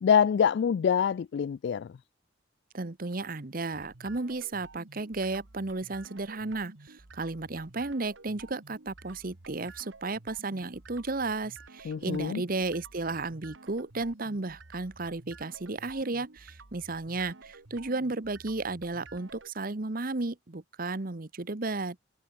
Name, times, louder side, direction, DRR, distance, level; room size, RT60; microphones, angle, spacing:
voice 1, 0.0-1.9 11.8-12.4, left 7 dB, 60° left, 0.3 m, -25 dB
voice 2, 2.7-22.0, right 3 dB, 50° right, 1.0 m, -34 dB
sound 1, 3.7-19.5, right 3 dB, 75° right, 1.6 m, -52 dB
head